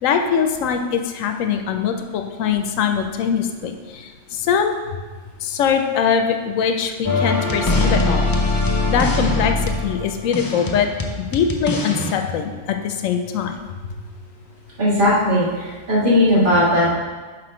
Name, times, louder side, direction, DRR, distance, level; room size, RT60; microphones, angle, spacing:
voice 1, 0.0-4.1 4.4-4.8 5.4-8.3 8.9-10.9 11.2-13.6, left 7 dB, 80° left, 6 dB, 1.0 m, -22 dB
sound 1, 7.0-12.1, left 2 dB, 30° left, 0.4 m, -22 dB
voice 2, 14.8-16.9, left 1 dB, 40° right, -8 dB, 2.0 m, -17 dB
6.0 x 4.6 x 4.9 m, 1.4 s
omnidirectional pair, 1.3 m